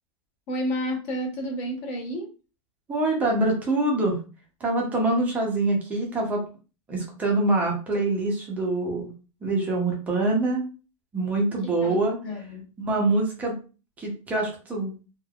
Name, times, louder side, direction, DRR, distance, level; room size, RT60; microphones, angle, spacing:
voice 1, 0.5-2.3 11.6-12.0 12.2-12.7, equal, 30° left, 2 dB, 0.7 m, -31 dB
voice 2, 2.9-4.2 4.6-6.4 6.9-9.1 9.4-10.6 11.1-12.2 12.8-13.6 14.0-14.9, right 2 dB, 10° right, -1 dB, 0.5 m, -25 dB
3.2 x 2.1 x 2.3 m, 0.34 s
supercardioid pair, 170°, 18 cm